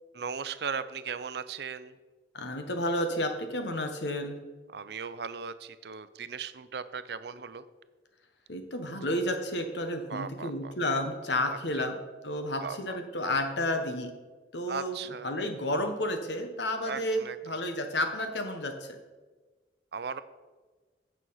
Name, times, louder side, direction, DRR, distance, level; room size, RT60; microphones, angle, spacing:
voice 1, 0.1-2.0 4.7-7.6 10.1-10.7 11.8-11.9 12.6-13.0 14.7-15.3 16.8-17.6 19.9-20.2, right 6 dB, 60° right, 13 dB, 0.5 m, -37 dB
voice 2, 2.3-4.4 8.5-11.9 12.2-14.1 14.5-15.0 15.2-19.0, left 1 dB, 75° left, 6 dB, 1.2 m, -31 dB
9.2 x 6.3 x 5.6 m, 1.3 s
head